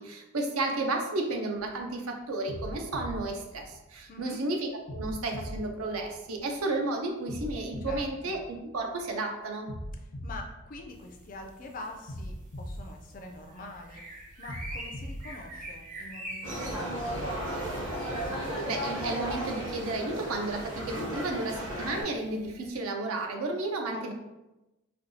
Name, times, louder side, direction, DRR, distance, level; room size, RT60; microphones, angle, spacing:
voice 1, 0.0-9.7 18.4-24.1, right 2 dB, 75° right, 3 dB, 0.5 m, -33 dB
sound 1, 1.6-1.9 2.5-4.3 4.9-6.7 7.3-9.1 9.7-11.5 12.1-13.9 14.5-16.3, equal, 75° left, 0.7 m, -41 dB
voice 2, 4.1-4.4 7.8-8.4 10.0-14.0 14.4-17.8 23.9-24.1, left 2 dB, 40° left, 4 dB, 0.3 m, -45 dB
sound 2, 10.9-22.7, right 1 dB, 35° right, 0.6 m, -47 dB
sound 3, 16.4-22.0, equal, 55° right, 1.0 m, -34 dB
4.3 x 2.3 x 2.7 m, 0.99 s
head